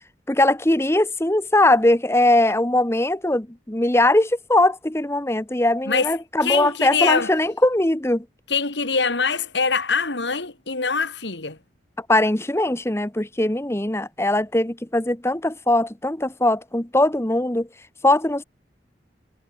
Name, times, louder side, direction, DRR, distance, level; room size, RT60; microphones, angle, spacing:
voice 1, 0.3-8.2 12.1-17.7 18.0-18.4, left 1 dB, 15° left, 1.0 m, -20 dB
voice 2, 5.8-6.1 6.4-7.3 8.5-11.6, left 5 dB, 85° left, 2.8 m, -23 dB
head